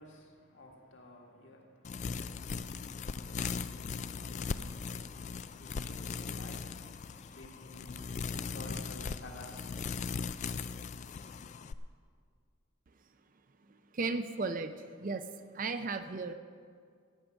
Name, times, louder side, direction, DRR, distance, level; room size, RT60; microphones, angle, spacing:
voice 1, 0.0-5.0 5.6-9.9, left 1 dB, 60° left, 1.9 m, -53 dB
sound 1, 1.8-11.7, left 5 dB, 35° left, 0.3 m, -39 dB
voice 2, 13.7-16.3, right 3 dB, 40° right, 0.5 m, -36 dB
15.5 x 8.6 x 5.9 m
head